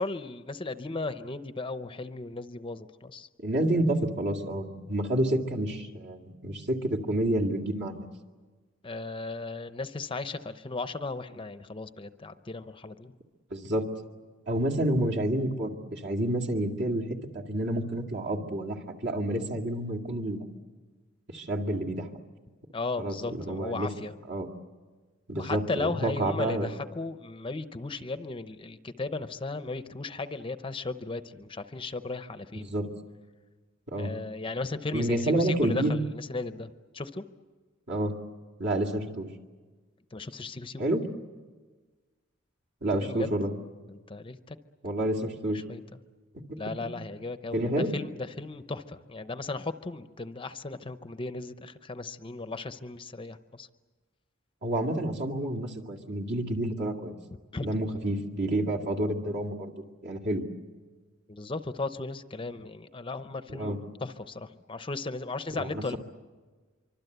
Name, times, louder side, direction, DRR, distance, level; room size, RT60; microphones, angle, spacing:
voice 1, 0.0-3.3 8.8-13.1 22.7-24.1 25.4-32.7 34.0-37.2 40.1-40.8 43.0-43.3 43.9-44.6 45.4-45.8 46.6-53.7 57.5-57.8 61.3-66.0, left 3 dB, 25° left, 11 dB, 0.7 m, -36 dB
voice 2, 3.4-8.1 13.5-13.9 14.5-17.0 17.3-20.5 21.3-22.1 23.0-23.9 24.3-24.5 25.3-26.7 32.6-32.9 33.9-34.1 34.9-35.9 37.9-38.2 38.6-39.3 40.8-41.1 42.8-43.5 44.8-45.6 46.5-46.9 47.5-47.9 54.6-57.1 57.6-59.7 60.0-60.5 63.5-63.8 65.6-66.0, right 1 dB, 55° right, 0 dB, 2.3 m, -29 dB
25.5 x 25.0 x 8.0 m, 1.4 s
head